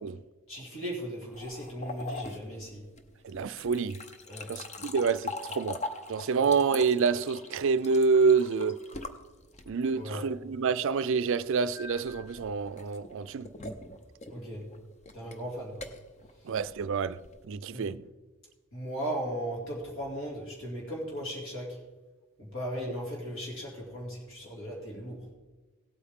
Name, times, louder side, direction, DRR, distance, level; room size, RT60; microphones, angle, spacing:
voice 1, 0.5-2.8 4.3-4.5 4.8-4.9 6.4-6.5 9.9-10.2 14.3-14.6 15.1-15.8 17.7-17.9 18.7-21.8 22.4-25.2, equal, 60° left, 2.5 m, -37 dB
sound 1, 1.3-10.0 11.7-17.5, left 2 dB, 30° left, 0.7 m, -42 dB
voice 2, 3.2-4.0 4.5-5.8 6.1-8.8 9.7-13.5 16.5-17.2 17.5-18.0, right 5 dB, 60° right, 0.4 m, -27 dB
17.5 x 8.5 x 3.6 m
head